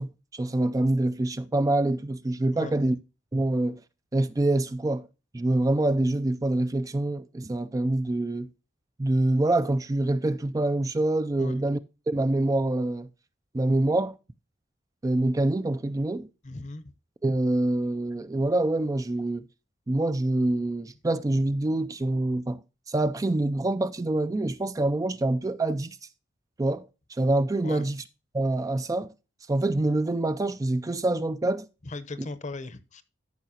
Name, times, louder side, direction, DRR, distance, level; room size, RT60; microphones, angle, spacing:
voice 1, 0.0-3.0 3.3-3.8 4.1-5.1 5.3-8.5 9.0-11.8 12.1-13.1 13.5-14.1 15.0-16.3 17.2-19.5 19.9-22.6 22.9-26.0 26.6-28.0 28.3-29.1 29.5-31.7, right 2 dB, 20° right, 0.4 m, -26 dB
voice 2, 16.4-16.8 27.6-27.8 31.8-33.0, left 2 dB, 40° left, 0.8 m, -37 dB
13.5 x 5.6 x 2.8 m
head